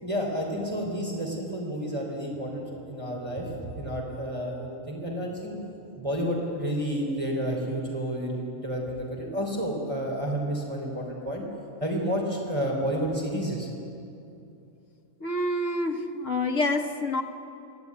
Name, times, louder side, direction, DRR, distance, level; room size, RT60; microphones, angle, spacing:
voice 1, 0.0-5.5 6.0-11.4 11.8-13.7, equal, 25° right, -1 dB, 3.4 m, -30 dB
voice 2, 15.2-17.2, left 2 dB, 80° left, 5 dB, 1.7 m, -27 dB
22.5 x 15.0 x 9.6 m, 2.7 s
omnidirectional pair, 1.3 m